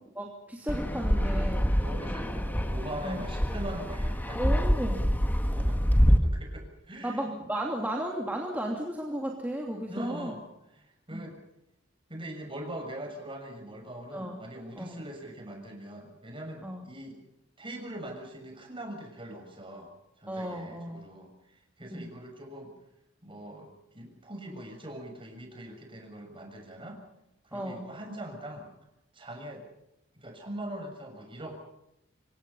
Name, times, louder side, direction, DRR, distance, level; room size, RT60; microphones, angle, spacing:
voice 1, 0.1-1.7 3.0-3.2 4.4-5.3 7.0-10.3 11.1-11.3 14.1-14.4 14.8-15.0 16.6-16.8 20.3-21.0 21.9-22.1 27.5-27.9, right 1 dB, 10° right, 0 dB, 2.8 m, -34 dB
Fixed-wing aircraft airplane, 0.7-6.2, equal, 10° left, 1.8 m, -26 dB
voice 2, 1.7-4.7 5.5-7.3 9.9-11.4 12.1-17.2 17.6-19.9 20.2-21.3 21.8-22.7 23.2-23.7 23.9-27.0 27.4-28.7 29.1-29.6 30.1-31.6, right 1 dB, 25° right, 3 dB, 6.7 m, -42 dB
27.0 x 24.5 x 5.6 m, 0.83 s
head